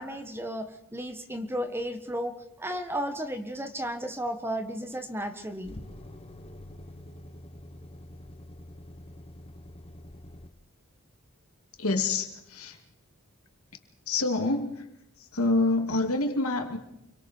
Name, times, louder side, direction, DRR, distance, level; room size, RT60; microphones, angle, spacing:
voice 1, 0.0-5.8, equal, 10° right, 7 dB, 1.4 m, -34 dB
sound 1, 4.9-10.5, left 1 dB, 25° left, 1.2 m, -46 dB
voice 2, 11.8-12.8 14.1-14.9 15.2-16.8, left 2 dB, 75° left, 4 dB, 2.7 m, -27 dB
29.0 x 23.5 x 4.6 m, 0.81 s
head